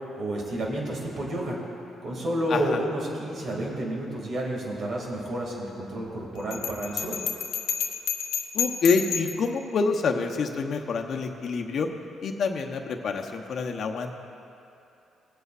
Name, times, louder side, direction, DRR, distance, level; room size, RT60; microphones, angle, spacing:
voice 1, 0.1-1.6 2.0-7.2, right 1 dB, 55° right, -2 dB, 2.5 m, -30 dB
voice 2, 2.5-2.8 8.5-11.9 12.2-14.1, left 4 dB, 60° left, 3 dB, 0.9 m, -27 dB
Bell, 6.5-9.5, left 7 dB, 85° left, 0.7 m, -30 dB
19.0 x 8.1 x 2.5 m, 2.7 s
cardioid pair, 90°, 0 cm